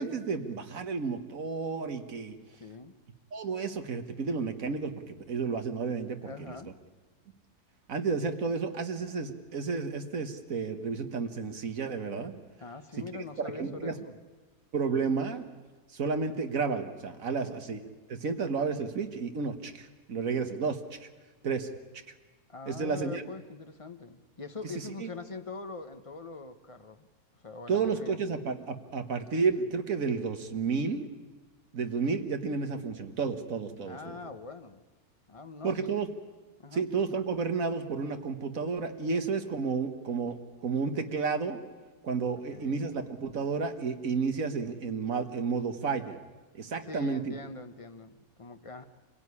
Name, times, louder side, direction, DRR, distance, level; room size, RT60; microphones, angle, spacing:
voice 1, 0.0-2.4 3.3-6.6 7.9-12.3 13.4-14.0 14.7-15.5 15.9-17.8 18.1-21.1 21.4-21.7 22.7-23.2 25.0-25.1 27.7-31.1 31.7-34.1 35.6-36.1 36.7-41.6 42.0-46.2 46.5-47.4, right 5 dB, 60° right, 8 dB, 1.8 m, -31 dB
voice 2, 2.5-2.9 6.2-6.7 12.6-14.2 17.3-17.6 22.5-27.1 27.3-28.1 33.8-34.8 35.3-36.0 36.6-36.9 42.3-42.9 46.8-48.8, left 4 dB, 25° left, 8 dB, 1.0 m, -43 dB
26.0 x 17.0 x 9.7 m, 1.3 s
omnidirectional pair, 1.6 m